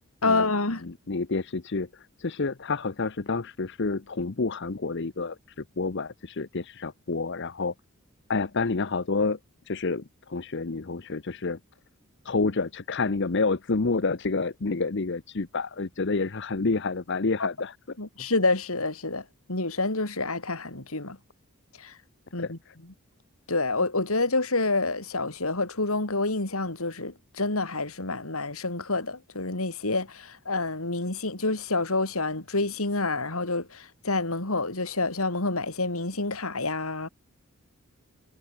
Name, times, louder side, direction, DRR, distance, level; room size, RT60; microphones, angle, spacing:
voice 1, 0.2-0.8 18.0-19.2 19.5-21.2 21.8-21.9 22.3-22.6 23.5-37.1, left 3 dB, 75° left, 3.5 m, -28 dB
voice 2, 0.8-7.7 8.3-9.4 9.7-11.6 12.2-17.8 22.4-22.7, left 3 dB, 55° left, 0.8 m, -29 dB
head